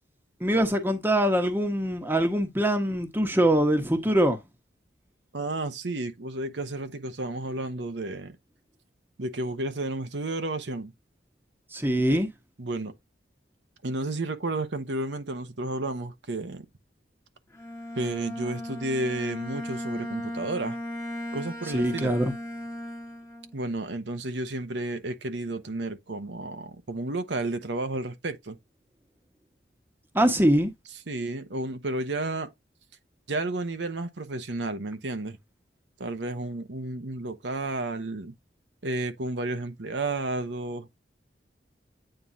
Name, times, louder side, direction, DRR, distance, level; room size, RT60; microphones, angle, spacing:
voice 1, 0.4-4.4 11.7-12.3 21.7-22.3 30.1-30.7, right 1 dB, 10° right, 1.1 m, -23 dB
voice 2, 5.3-8.4 9.2-10.9 12.6-12.9 13.8-16.6 17.9-20.8 21.3-22.2 23.5-28.6 31.1-32.5 33.3-35.4 36.0-38.3 38.8-40.9, right 2 dB, 75° right, 1.0 m, -32 dB
Bowed string instrument, 17.5-23.6, left 1 dB, 15° left, 1.3 m, -36 dB
9.0 x 3.8 x 2.7 m
head